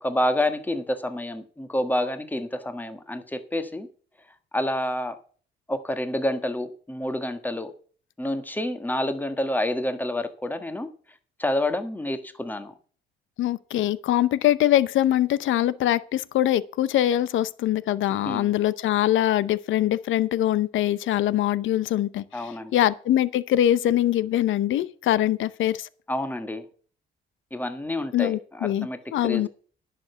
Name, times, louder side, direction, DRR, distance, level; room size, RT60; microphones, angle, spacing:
voice 1, 0.0-3.9 4.5-5.1 5.7-7.7 8.2-10.9 11.4-12.7 18.1-18.5 22.3-22.7 26.1-26.6 27.5-29.5, left 1 dB, 10° left, 1.5 m, -28 dB
voice 2, 13.4-25.9 28.1-29.5, left 12 dB, 80° left, 0.7 m, -23 dB
10.5 x 6.9 x 6.9 m
cardioid pair, 90°, 20 cm